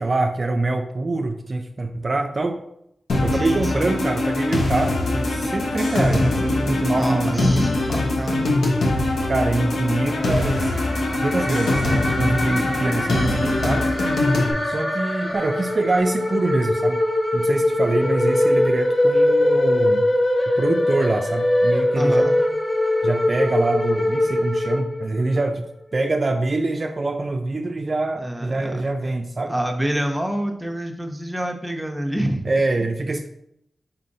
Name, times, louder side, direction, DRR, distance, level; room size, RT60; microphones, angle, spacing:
voice 1, 0.0-2.6 3.2-7.7 9.3-10.7 11.2-13.9 14.6-17.0 17.3-20.1 20.6-22.3 23.0-25.7 25.9-29.5 32.5-33.3, right 2 dB, 50° right, 4 dB, 0.3 m, -24 dB
sound 1, 3.1-14.5, left 2 dB, 80° left, 0.7 m, -22 dB
voice 2, 3.3-4.0 6.9-8.6 21.9-22.4 28.2-29.1 29.5-32.4, right 1 dB, 10° right, 3 dB, 0.7 m, -27 dB
sound 2, 10.1-25.4, left 1 dB, 35° left, 1.4 m, -22 dB
4.1 x 3.8 x 2.7 m, 0.77 s
cardioid pair, 40°, 0 cm